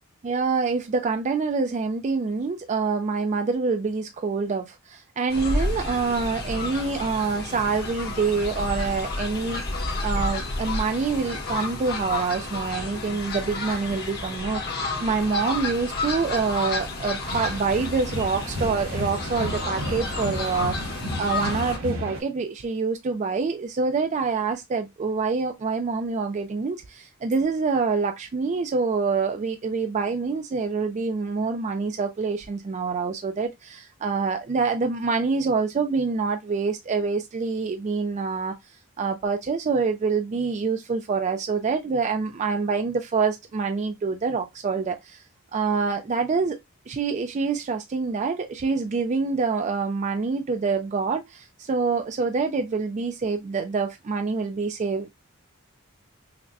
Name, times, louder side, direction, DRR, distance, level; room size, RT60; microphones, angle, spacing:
voice 1, 0.2-20.8 21.2-38.5 39.0-45.2 45.5-46.6 46.9-55.1, right 4 dB, 35° right, 0.3 m, -26 dB
Fowl, 5.3-21.8, left 2 dB, 50° left, 1.1 m, -31 dB
sound 1, 17.2-22.2, equal, 85° right, 1.5 m, -33 dB
5.8 x 2.1 x 2.6 m
head